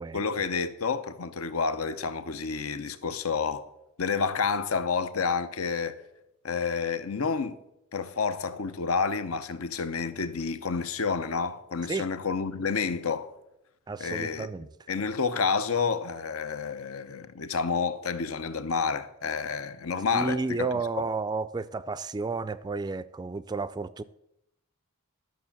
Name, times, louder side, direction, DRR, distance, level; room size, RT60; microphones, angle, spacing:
voice 1, 0.1-3.6 4.0-6.0 6.4-7.6 7.9-13.3 14.0-14.5 14.9-20.7 21.0-21.1, left 5 dB, 80° left, 0.8 m, -29 dB
voice 2, 13.9-14.7 20.1-24.0, right 3 dB, 20° right, 0.3 m, -31 dB
12.5 x 6.3 x 7.1 m
head